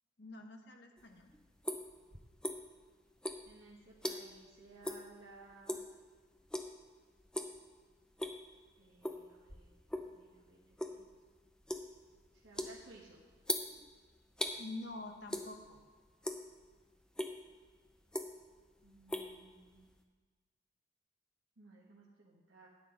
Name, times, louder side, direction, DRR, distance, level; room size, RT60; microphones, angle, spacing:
voice 1, 0.2-1.3 14.6-15.8, left 2 dB, 60° left, 4 dB, 1.1 m, -47 dB
sound 1, 1.0-2.9 3.2-4.5 4.8-5.1 5.4-6.0 6.5-6.9 7.2-7.6 8.0-8.6 9.0-10.1 10.5-14.6 15.3-15.8 16.1-16.7 17.2-17.3 17.9-18.6 18.8-20.0, left 1 dB, 5° left, 0.5 m, -39 dB
voice 2, 3.4-5.8 8.8-9.7 10.0-10.6 10.9-11.1 12.3-13.2 18.8-19.9 21.6-22.7, right 3 dB, 80° right, -4 dB, 1.3 m, -58 dB
10.0 x 9.2 x 3.8 m, 1.4 s
head